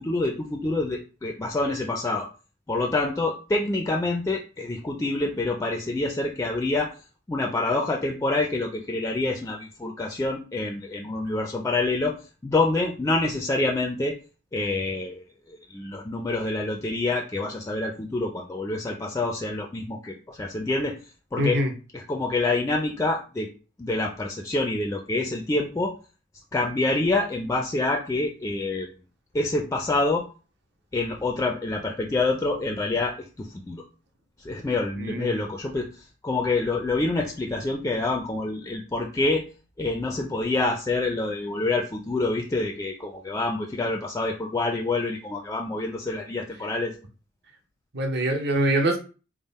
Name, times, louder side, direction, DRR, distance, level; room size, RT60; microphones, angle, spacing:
voice 1, 0.0-2.3 2.7-6.9 7.3-12.1 12.4-14.2 14.5-15.2 15.7-21.0 21.3-21.6 21.9-23.5 23.8-25.9 26.5-28.9 29.3-30.2 30.9-33.8 34.4-35.9 36.2-39.4 39.8-46.9, left 2 dB, 15° left, 2 dB, 0.3 m, -27 dB
voice 2, 21.4-21.7 35.0-35.3 47.9-49.0, right 1 dB, 60° right, 3 dB, 0.7 m, -24 dB
3.5 x 2.0 x 4.0 m, 0.35 s
head